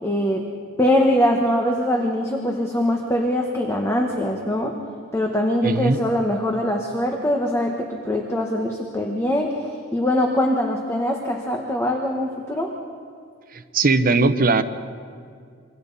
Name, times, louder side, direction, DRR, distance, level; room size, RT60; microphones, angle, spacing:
voice 1, 0.0-0.5 0.8-4.8 5.1-12.7, left 1 dB, 15° left, 2 dB, 1.3 m, -22 dB
voice 2, 5.6-6.0 13.5-14.6, right 3 dB, 45° right, 9 dB, 0.9 m, -19 dB
27.5 x 25.0 x 4.2 m, 2.3 s
head